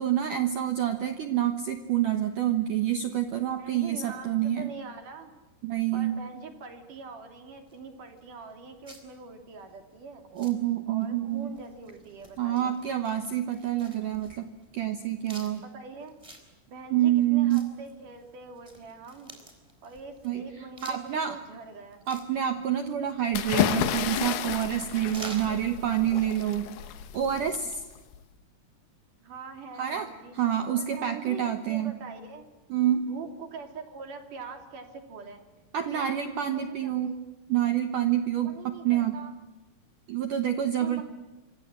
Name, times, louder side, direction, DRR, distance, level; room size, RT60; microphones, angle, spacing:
voice 1, 0.0-4.7 5.6-6.1 10.3-11.5 12.4-14.5 14.7-15.6 16.9-17.6 20.2-20.4 20.8-21.4 22.1-26.7 27.1-27.8 29.8-30.1 30.3-31.9 32.7-33.1 35.7-37.1 37.5-39.1 40.1-41.0, right 11 dB, 80° right, 7 dB, 1.8 m, -27 dB
voice 2, 3.6-5.3 5.9-10.2 10.9-12.8 15.6-16.2 16.7-19.3 19.8-22.0 25.2-26.1 29.2-30.4 30.7-32.4 33.0-35.4 35.9-37.2 38.4-39.3 40.6-41.0, right 4 dB, 45° right, 5 dB, 3.7 m, -44 dB
sound 1, 7.7-26.4, right 1 dB, 5° right, 4.2 m, -51 dB
sound 2, 23.3-28.2, left 10 dB, 65° left, 2.8 m, -31 dB
27.0 x 24.5 x 7.6 m, 1.1 s
omnidirectional pair, 5.7 m